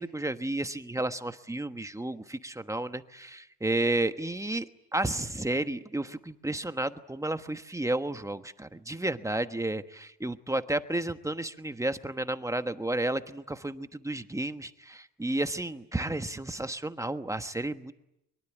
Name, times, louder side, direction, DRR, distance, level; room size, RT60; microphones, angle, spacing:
voice 1, 0.0-17.9, right 2 dB, 10° right, 9 dB, 1.2 m, -32 dB
23.5 x 23.0 x 9.9 m, 0.83 s
cardioid pair, 105°, 37 cm